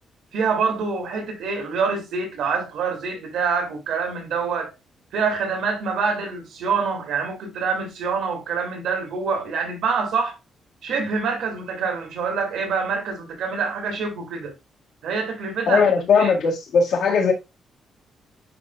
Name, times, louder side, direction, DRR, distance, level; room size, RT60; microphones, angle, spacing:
voice 1, 0.3-4.7 5.1-10.4 10.8-14.5 15.0-16.3, right 5 dB, 80° right, 2.4 m, -26 dB
voice 2, 15.7-17.3, left 5 dB, 70° left, 1.9 m, -18 dB
9.5 x 4.1 x 2.4 m
cardioid pair, 145°, 0 cm